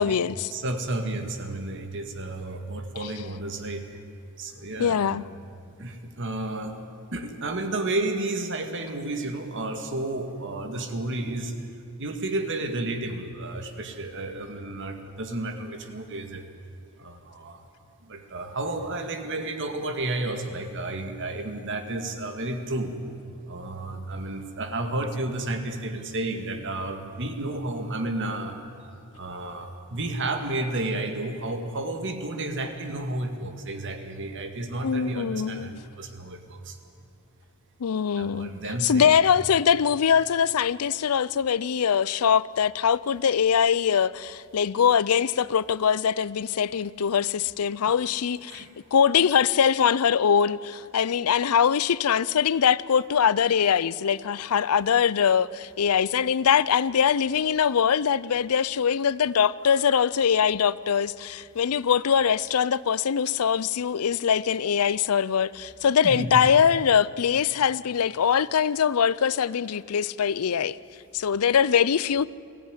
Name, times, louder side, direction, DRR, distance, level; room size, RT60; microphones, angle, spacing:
voice 1, 0.0-0.5 3.0-3.1 4.8-5.2 34.8-35.8 37.8-38.5 38.8-70.8 71.1-72.3, left 7 dB, 80° left, 0.5 m, -22 dB
voice 2, 0.5-3.8 4.4-5.2 5.8-6.8 7.1-11.5 12.0-16.4 17.0-17.7 18.0-22.9 23.5-28.6 29.1-36.8 38.2-39.2 47.9-48.0 48.5-48.7 66.0-66.4, right 2 dB, 60° right, 2.0 m, -32 dB
21.5 x 15.5 x 9.8 m
head